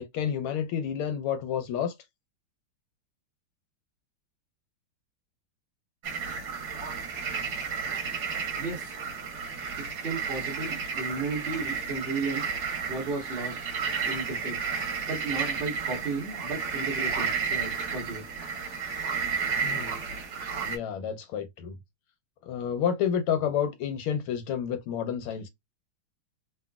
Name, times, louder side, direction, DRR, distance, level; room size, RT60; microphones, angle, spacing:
voice 1, 0.0-1.9 19.6-19.9 20.7-21.8 22.4-25.5, left 8 dB, 85° left, 1.5 m, -30 dB
sound 1, 6.0-20.8, right 6 dB, 55° right, 1.4 m, -32 dB
voice 2, 8.6-9.0 10.0-12.4 12.9-13.6 14.1-14.6 15.1-18.2, right 3 dB, 35° right, 1.0 m, -34 dB
3.9 x 2.2 x 2.3 m
omnidirectional pair, 2.4 m